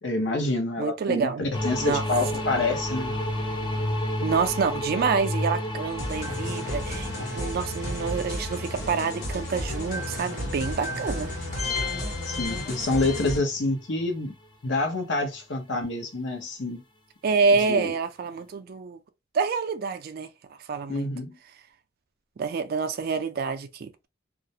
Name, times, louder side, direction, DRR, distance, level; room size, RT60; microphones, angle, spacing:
voice 1, 0.0-3.1 12.2-14.3 14.6-16.8 17.6-17.9 20.9-21.4, left 2 dB, 70° left, 0.8 m, -27 dB
voice 2, 0.8-1.4 1.8-2.0 4.2-11.3 17.2-19.0 19.3-21.1 22.4-24.1, right 5 dB, 50° right, 0.3 m, -27 dB
sound 1, 1.5-14.0, left 1 dB, 25° left, 0.4 m, -33 dB
sound 2, 6.0-13.4, left 1 dB, 45° left, 1.2 m, -32 dB
2.4 x 2.0 x 2.7 m
head